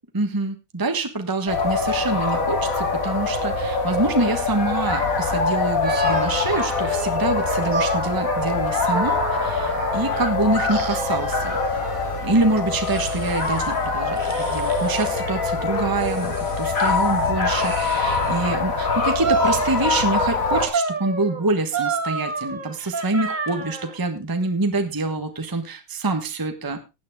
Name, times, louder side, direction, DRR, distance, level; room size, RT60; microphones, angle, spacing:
voice 1, 0.1-11.6 12.2-26.8, right 2 dB, 15° right, 6 dB, 1.2 m, -25 dB
sound 1, 1.5-20.7, left 4 dB, 55° left, 2.4 m, -24 dB
sound 2, 5.8-10.3 10.7-12.2 12.8-13.8 14.2-15.2 15.7-18.6 19.2-20.2 20.5-24.0, right 3 dB, 30° right, 1.3 m, -30 dB
15.5 x 9.6 x 3.6 m, 0.27 s
omnidirectional pair, 1.7 m